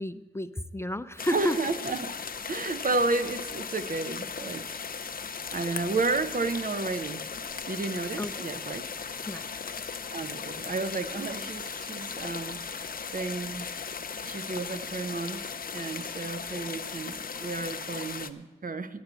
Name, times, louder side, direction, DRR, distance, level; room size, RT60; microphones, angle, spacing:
voice 1, 0.0-1.6 8.2-8.5 9.3-9.4, equal, 15° left, 12 dB, 0.5 m, -31 dB
sound 1, 1.2-18.3, left 6 dB, 50° left, 0.7 m, -37 dB
voice 2, 1.3-2.1 2.5-4.7 5.5-7.2 7.7-8.9 10.1-13.7 14.2-19.0, right 3 dB, 50° right, 10 dB, 0.7 m, -32 dB
12.0 x 6.9 x 8.1 m, 1.2 s
cardioid pair, 45°, 19 cm